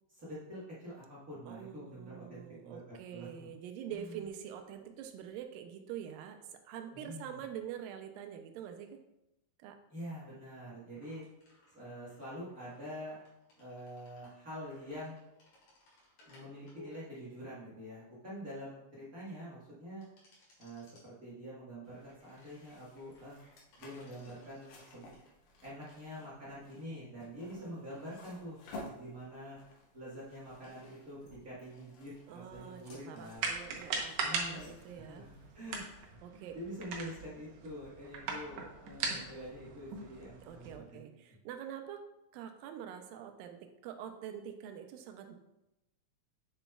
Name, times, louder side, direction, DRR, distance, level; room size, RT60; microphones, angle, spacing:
voice 1, 0.1-3.5 3.9-4.2 6.9-7.4 9.9-11.2 11.7-13.2 13.6-15.1 16.3-20.0 20.6-23.4 23.8-25.1 25.6-28.6 29.0-29.6 29.9-41.0, equal, 45° right, -9 dB, 1.1 m, -46 dB
voice 2, 1.5-9.0 9.6-9.8 27.6-27.8 32.3-35.2 36.2-36.6 40.4-42.0 42.3-45.4, right 9 dB, 85° right, 6 dB, 2.3 m, -45 dB
sound 1, 11.0-18.7 20.0-21.1 22.1-25.2, left 2 dB, 55° left, 3.2 m, -62 dB
sound 2, 21.8-36.1, left 2 dB, 75° left, 2.8 m, -55 dB
sound 3, 33.3-40.7, right 4 dB, 65° right, 1.7 m, -40 dB
7.1 x 6.9 x 2.3 m, 0.91 s
omnidirectional pair, 4.0 m